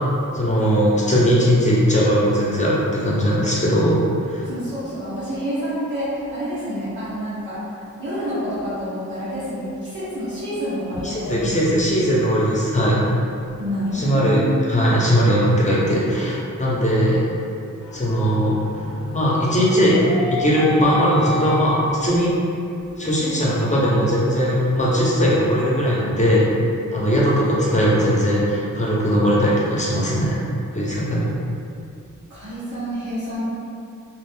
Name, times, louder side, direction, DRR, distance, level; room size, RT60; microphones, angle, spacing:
voice 1, 0.3-4.0 4.3-4.5 11.0-13.0 13.9-17.2 17.9-18.6 19.1-20.0 20.3-22.4 23.0-26.5 26.9-30.3 30.7-31.3, equal, 25° left, -7 dB, 0.7 m, -19 dB
voice 2, 4.4-7.6 8.0-11.8 13.6-14.6 32.3-33.4, equal, 70° right, -12 dB, 0.9 m, -28 dB
sound 1, 17.8-22.4 22.8-22.9 23.4-23.5 23.9-25.1, left 1 dB, 75° left, 0.6 m, -31 dB
2.5 x 2.4 x 3.5 m, 2.6 s
wide cardioid pair, 85°, 31 cm